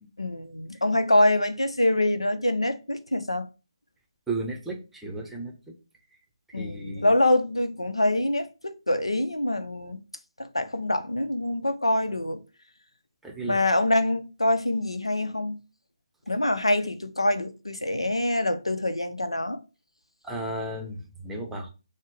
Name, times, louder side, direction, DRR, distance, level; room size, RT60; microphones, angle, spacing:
voice 1, 0.2-3.5 6.5-10.0 10.4-12.4 13.5-15.6 16.3-19.6, left 1 dB, 90° left, 0.6 m, -25 dB
voice 2, 4.3-5.5 6.5-7.1 13.2-13.6 20.2-21.7, right 2 dB, 5° right, 0.8 m, -34 dB
6.2 x 2.1 x 3.8 m
figure-of-eight pair, 145°, 3 cm